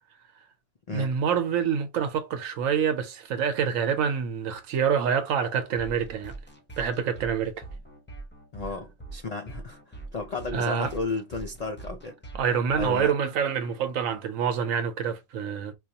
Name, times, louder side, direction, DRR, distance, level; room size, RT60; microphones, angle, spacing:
voice 1, 0.9-6.3 6.8-7.6 10.5-10.9 12.3-15.7, right 7 dB, 85° right, 1.1 m, -26 dB
sound 1, 5.8-14.2, right 3 dB, 10° left, 0.5 m, -43 dB
voice 2, 8.5-12.2 12.7-13.1, left 3 dB, 70° left, 0.3 m, -34 dB
4.7 x 2.3 x 2.8 m
omnidirectional pair, 1.4 m